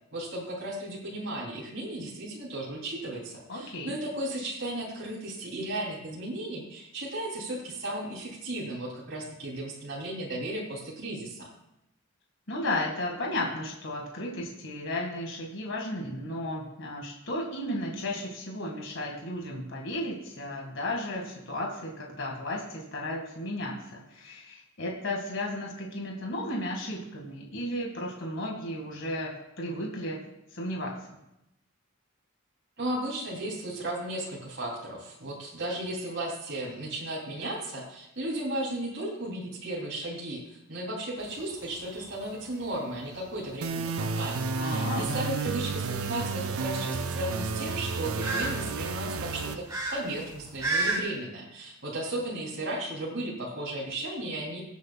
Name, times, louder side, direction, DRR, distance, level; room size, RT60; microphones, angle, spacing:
voice 1, 0.1-11.5 32.8-54.6, right 1 dB, 55° right, -3 dB, 3.1 m, -35 dB
voice 2, 3.5-4.0 12.5-30.2 30.5-30.9 44.6-45.1, left 1 dB, 65° left, 0 dB, 1.9 m, -34 dB
sound 1, 41.2-51.0, right 2 dB, 15° right, 2.3 m, -36 dB
sound 2, 43.6-49.6, right 4 dB, 85° right, 0.7 m, -31 dB
21.5 x 8.3 x 2.3 m, 0.85 s
head